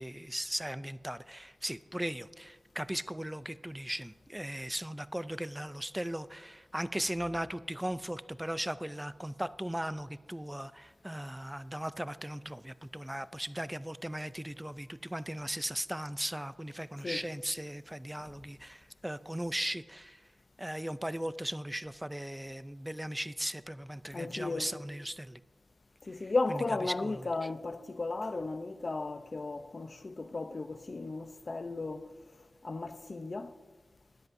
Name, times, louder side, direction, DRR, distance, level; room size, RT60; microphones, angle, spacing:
voice 1, 0.0-20.2 20.6-25.4 26.2-26.6 27.0-27.3, right 1 dB, 10° right, 0.3 m, -38 dB
voice 2, 24.1-24.7 26.0-32.1 32.6-33.5, left 3 dB, 50° left, 0.6 m, -35 dB
20.5 x 7.8 x 2.6 m
wide cardioid pair, 75°, 0 cm